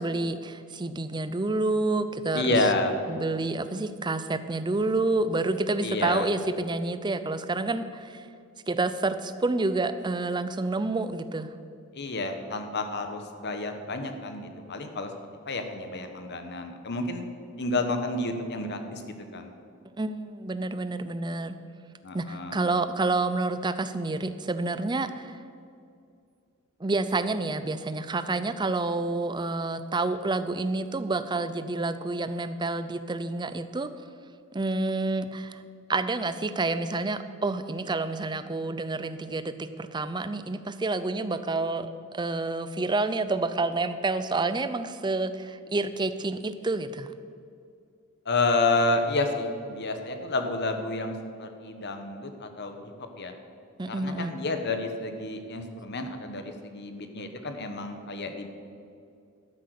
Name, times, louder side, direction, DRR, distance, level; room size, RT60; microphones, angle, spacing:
voice 1, 0.0-2.6 3.1-8.3 8.7-11.5 20.0-21.6 22.1-25.4 26.8-33.9 34.5-35.6 35.9-47.1 53.8-54.4, right 2 dB, 20° right, 11 dB, 0.5 m, -29 dB
voice 2, 2.3-2.9 5.8-6.3 11.9-15.1 15.5-17.3 17.6-19.0 19.3-19.5 22.0-22.6 48.2-53.3 53.9-58.5, left 2 dB, 50° left, 6 dB, 1.2 m, -30 dB
12.5 x 8.0 x 6.6 m, 2.4 s
head